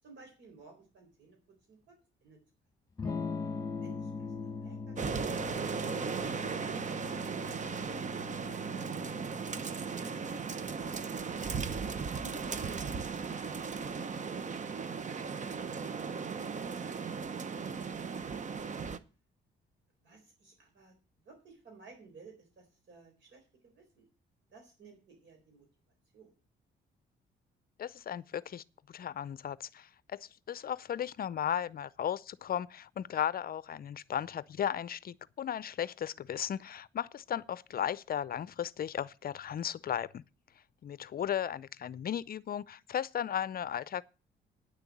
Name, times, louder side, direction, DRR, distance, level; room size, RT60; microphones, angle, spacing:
voice 1, 0.0-2.4 3.8-4.3 4.6-6.7 20.0-20.9 21.2-24.1 24.5-25.7 26.1-26.3, right 4 dB, 65° right, 4.3 m, -57 dB
Electric guitar / Strum, 3.0-12.7, left 4 dB, 20° left, 2.0 m, -42 dB
sound 1, 5.0-19.0, right 5 dB, 40° right, 0.9 m, -37 dB
voice 2, 27.8-40.2 40.8-44.0, left 9 dB, 50° left, 0.5 m, -36 dB
9.8 x 6.8 x 8.6 m
cardioid pair, 90°, 20 cm